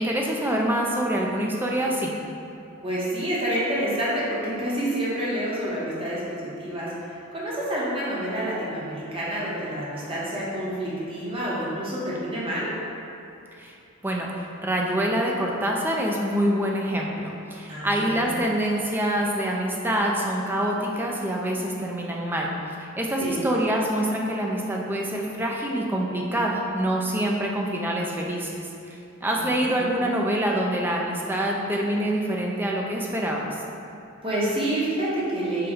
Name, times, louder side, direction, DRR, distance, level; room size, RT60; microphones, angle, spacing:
voice 1, 0.0-2.1 13.6-13.7 14.0-14.3 14.6-22.5 22.8-28.7 29.2-33.6, right 1 dB, 10° right, -1 dB, 0.3 m, -25 dB
voice 2, 2.8-12.7 17.7-18.3 23.2-23.4 29.3-30.0 34.2-35.7, right 1 dB, 25° right, -7 dB, 0.8 m, -28 dB
5.2 x 2.2 x 3.4 m, 2.7 s
head